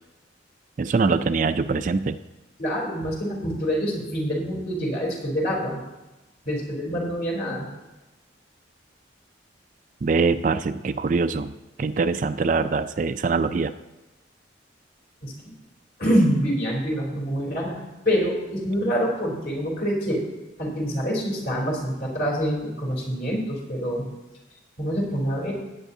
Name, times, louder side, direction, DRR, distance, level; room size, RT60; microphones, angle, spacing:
voice 1, 0.8-2.2 10.0-11.5 11.8-13.7, right 4 dB, 40° right, 10 dB, 0.3 m, -23 dB
voice 2, 2.6-5.8 6.4-7.7 15.2-15.5 16.0-20.2 20.6-24.1 24.8-25.5, equal, 55° left, -2 dB, 3.5 m, -26 dB
17.0 x 9.0 x 2.7 m, 1.1 s
head